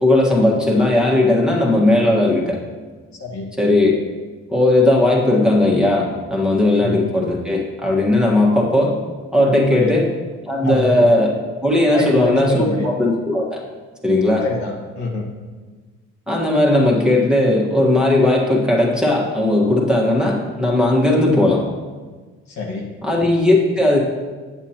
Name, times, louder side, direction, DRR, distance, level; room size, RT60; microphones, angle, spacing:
voice 1, 0.0-2.6 3.6-4.0 4.5-9.0 9.3-10.1 10.5-11.4 11.6-12.7 13.0-13.6 14.0-14.4 16.3-21.7 23.0-24.0, left 1 dB, 5° right, -4 dB, 1.4 m, -17 dB
voice 2, 10.6-11.1 11.9-12.9 14.4-15.3 22.5-22.9, left 3 dB, 70° left, -1 dB, 1.4 m, -26 dB
8.1 x 7.1 x 2.9 m, 1.4 s
cardioid pair, 90°, 30 cm